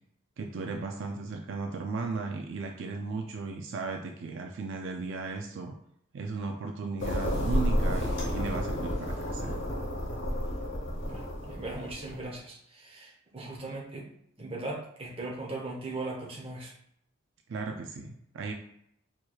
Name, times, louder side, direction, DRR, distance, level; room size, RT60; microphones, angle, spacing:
voice 1, 0.4-5.8 6.1-9.6 17.5-18.5, right 4 dB, 65° right, 3 dB, 0.4 m, -36 dB
sound 1, 7.0-12.3, equal, 65° left, 0.9 m, -31 dB
voice 2, 11.0-14.1 14.4-16.7, right 2 dB, 25° right, -2 dB, 0.8 m, -39 dB
4.5 x 2.9 x 2.3 m, 0.72 s
head